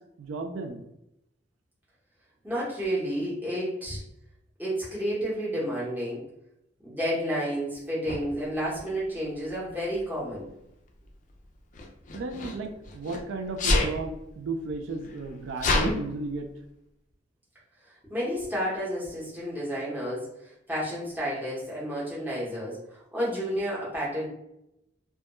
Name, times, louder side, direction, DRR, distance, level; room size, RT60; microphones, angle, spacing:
voice 1, 0.2-0.8 12.1-16.5, right 3 dB, 85° right, 5 dB, 0.3 m, -34 dB
voice 2, 2.4-4.0 4.6-6.2 6.8-10.5 18.1-24.3, equal, 10° right, -8 dB, 0.8 m, -31 dB
Sneeze, 8.1-8.2 9.3-9.7 11.7-13.2 13.6-14.0 14.7-14.8 15.0-15.9, left 2 dB, 40° left, 0.3 m, -26 dB
2.2 x 2.1 x 2.9 m, 0.83 s
head